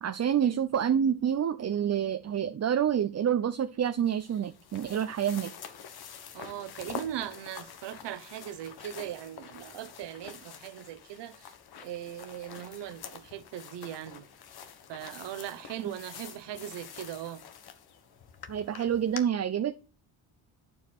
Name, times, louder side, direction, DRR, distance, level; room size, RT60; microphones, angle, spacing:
voice 1, 0.0-5.5 15.8-15.9 18.5-19.8, right 9 dB, 35° right, 0.7 m, -28 dB
sound 1, 4.0-19.2, left 8 dB, 60° left, 1.5 m, -47 dB
voice 2, 6.3-11.5 11.8-14.2 14.9-17.4, right 11 dB, 75° right, 1.1 m, -39 dB
11.0 x 4.8 x 6.0 m
cardioid pair, 85°, 42 cm